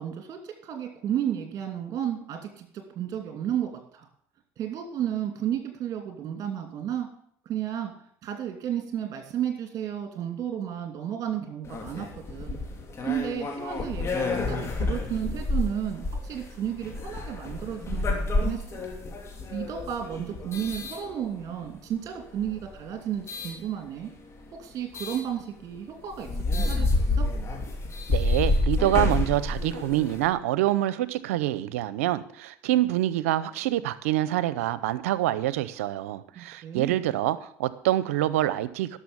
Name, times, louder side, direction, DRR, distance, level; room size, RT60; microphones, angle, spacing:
voice 1, 0.0-4.1 4.6-7.1 7.5-7.9 8.2-12.6 13.0-18.8 19.5-24.1 24.5-27.3 36.4-37.0, right 9 dB, 50° right, 4 dB, 2.6 m, -33 dB
sound 1, 11.6-21.7 22.3-23.6 24.9-25.2 25.7-25.8 26.1-30.3, left 2 dB, 40° left, 2.9 m, -29 dB
voice 2, 28.1-39.0, right 14 dB, 90° right, 16 dB, 0.7 m, -26 dB
12.0 x 6.6 x 7.2 m, 0.64 s
supercardioid pair, 80°, 7 cm